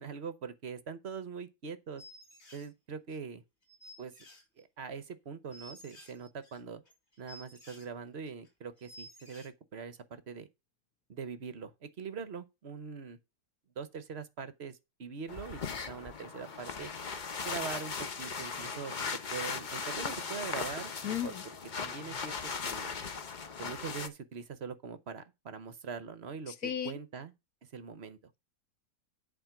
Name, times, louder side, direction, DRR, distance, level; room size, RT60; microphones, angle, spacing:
voice 1, 0.0-2.0 2.5-3.4 4.0-4.1 4.6-6.8 7.2-10.5 11.1-13.2 13.8-16.9 17.4-21.3 21.8-22.3 22.6-22.9 23.6-27.3 27.7-28.2, right 5 dB, 55° right, 0.7 m, -42 dB
sound 1, 2.0-2.7 3.1-3.2 3.6-4.8 5.1-5.2 5.5-7.9 8.3-8.5 8.8-9.5, equal, 35° left, 3.4 m, -53 dB
sound 2, 15.3-24.1, left 5 dB, 85° left, 0.4 m, -38 dB
voice 2, 21.0-21.4 26.5-27.0, left 9 dB, 55° left, 1.3 m, -35 dB
10.5 x 4.5 x 5.9 m
omnidirectional pair, 2.1 m